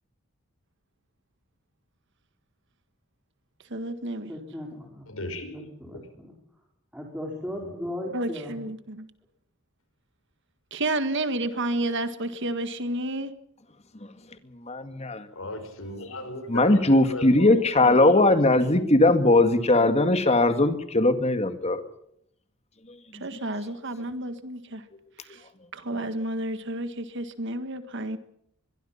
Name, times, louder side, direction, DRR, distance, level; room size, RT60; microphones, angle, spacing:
voice 1, 3.7-4.3 8.1-9.1 10.7-13.3 17.5-18.0 23.2-24.8 25.2-25.4 25.7-28.2, right 1 dB, 60° right, 10 dB, 1.7 m, -31 dB
voice 2, 4.3-5.1 5.5-6.3 6.9-8.6, left 1 dB, 5° right, -1 dB, 4.7 m, -37 dB
voice 3, 5.1-5.5 15.3-17.5 17.8-18.4, left 1 dB, 75° left, 7 dB, 5.4 m, -36 dB
voice 4, 14.7-15.3 16.5-21.8 23.3-23.4, left 2 dB, 30° left, 9 dB, 2.1 m, -20 dB
24.5 x 22.5 x 5.8 m, 0.74 s
head